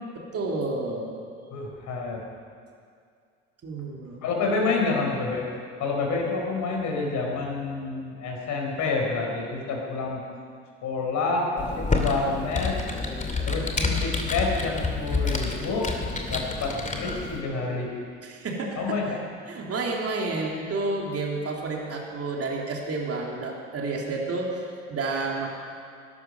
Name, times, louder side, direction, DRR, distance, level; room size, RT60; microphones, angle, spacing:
voice 1, 0.3-1.1 3.6-4.3 18.2-19.2 19.5-25.5, right 3 dB, 40° right, -1 dB, 3.5 m, -30 dB
voice 2, 1.5-2.2 4.2-5.4 5.8-10.2 10.8-12.8 13.5-15.9 16.3-17.9 18.8-19.2, left 3 dB, 55° left, 0 dB, 4.8 m, -28 dB
Computer keyboard, 11.6-17.4, left 3 dB, 20° left, 2.6 m, -28 dB
20.5 x 12.0 x 5.6 m, 2.2 s
figure-of-eight pair, 60°, 35 cm